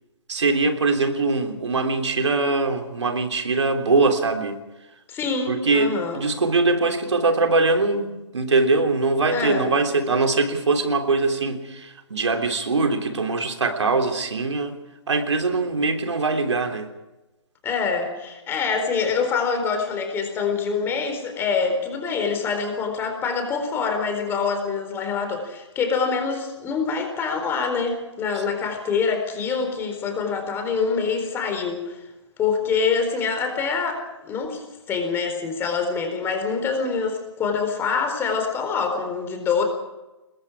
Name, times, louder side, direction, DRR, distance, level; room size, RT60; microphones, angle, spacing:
voice 1, 0.3-4.6 5.5-14.8 15.1-16.9, right 3 dB, 70° right, 5 dB, 3.4 m, -22 dB
voice 2, 5.1-6.2 9.3-9.7 17.6-32.0 32.4-39.6, left 5 dB, 15° left, 5 dB, 4.2 m, -25 dB
28.5 x 21.5 x 4.8 m, 1.0 s
figure-of-eight pair, 135°, 15 cm